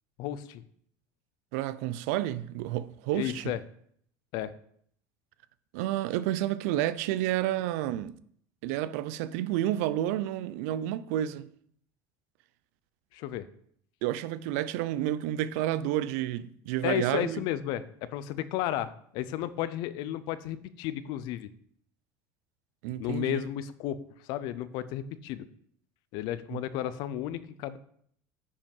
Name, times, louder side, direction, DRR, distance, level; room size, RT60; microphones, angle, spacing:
voice 1, 0.2-0.6 3.1-3.6 4.3-4.5 13.1-13.5 16.8-21.5 23.0-24.0 24.3-25.5 26.1-27.8, left 12 dB, 65° left, 0.7 m, -33 dB
voice 2, 1.5-3.5 5.7-8.1 8.6-11.5 14.0-17.4 22.8-23.4 26.5-26.6, right 13 dB, 85° right, 0.5 m, -30 dB
9.8 x 5.3 x 5.4 m
cardioid pair, 145°, 8 cm